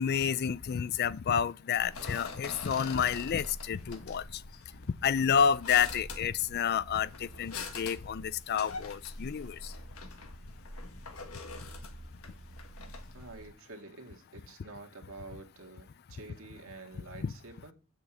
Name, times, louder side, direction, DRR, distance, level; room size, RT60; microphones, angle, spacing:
voice 1, 0.0-4.2 5.0-7.1 7.4-9.6 17.2-17.3, left 7 dB, 50° left, 0.4 m, -29 dB
sound 1, 1.7-13.5, left 3 dB, 80° left, 1.5 m, -44 dB
voice 2, 13.1-17.7, right 3 dB, 70° right, 2.0 m, -48 dB
7.8 x 6.8 x 7.8 m
head